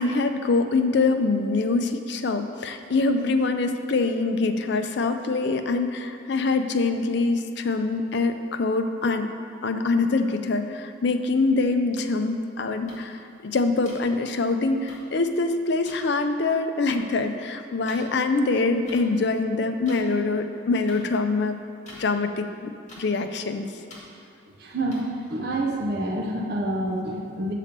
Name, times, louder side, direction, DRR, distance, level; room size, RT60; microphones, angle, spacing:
voice 1, 0.0-9.3 9.6-21.6 22.0-23.7, left 3 dB, 60° left, 7 dB, 0.5 m, -24 dB
sound 1, 12.9-13.0 13.9-14.0 14.9-15.0 15.9-16.0 16.9-17.0 17.9-18.0 18.9-19.0 19.9-20.0 20.9-21.0 21.9-22.0 22.9-23.0 23.9-24.0 24.9-25.0, left 2 dB, 40° left, 1.7 m, -44 dB
voice 2, 24.6-25.0 25.3-27.5, right 1 dB, 55° right, -1 dB, 0.7 m, -27 dB
6.7 x 4.2 x 6.6 m, 2.6 s
head